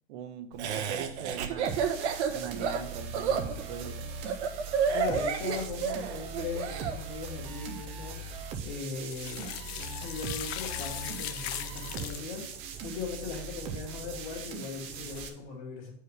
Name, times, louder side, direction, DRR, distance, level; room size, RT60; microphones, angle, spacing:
voice 1, 0.1-1.8 2.3-4.1, right 7 dB, 40° right, 9 dB, 0.7 m, -40 dB
Laughter, 0.6-7.0, right 6 dB, 90° right, 1.2 m, -30 dB
sound 1, 1.6-15.3, right 5 dB, 20° right, 0.4 m, -40 dB
voice 2, 4.9-15.9, left 5 dB, 45° left, -6 dB, 2.1 m, -39 dB
sound 2, 9.0-12.5 15.1-15.2, left 11 dB, 65° left, 0.7 m, -39 dB
6.8 x 4.7 x 4.9 m, 0.64 s
supercardioid pair, 170°, 33 cm